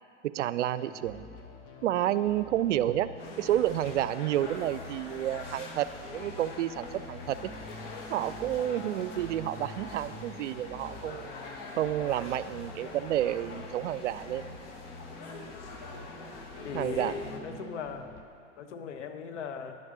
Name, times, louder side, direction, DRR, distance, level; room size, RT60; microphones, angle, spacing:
voice 1, 0.2-1.2 1.8-3.1 3.4-7.5 8.1-11.4 11.8-14.6 16.7-17.1, right 12 dB, 80° right, 15 dB, 0.5 m, -30 dB
sound 1, 0.8-18.2, left 2 dB, 35° left, 1.2 m, -48 dB
sound 2, 3.2-17.4, left 3 dB, 50° left, 1.6 m, -44 dB
voice 2, 16.6-18.1 18.6-19.8, left 6 dB, 75° left, 6 dB, 1.1 m, -38 dB
10.5 x 6.4 x 7.5 m, 2.3 s
hypercardioid pair, 115°, 36 cm